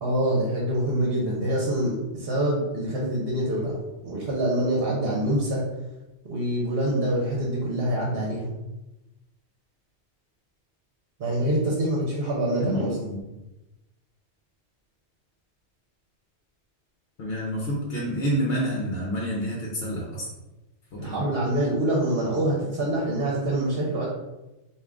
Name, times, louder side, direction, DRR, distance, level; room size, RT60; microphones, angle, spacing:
voice 1, 0.0-5.6 6.2-8.5 11.2-12.9 21.0-24.1, right 1 dB, 60° right, -3 dB, 0.9 m, -25 dB
voice 2, 12.6-13.2 17.2-20.3 20.9-21.2, equal, 60° left, -3 dB, 1.0 m, -28 dB
3.6 x 2.5 x 3.5 m, 1.0 s
omnidirectional pair, 1.2 m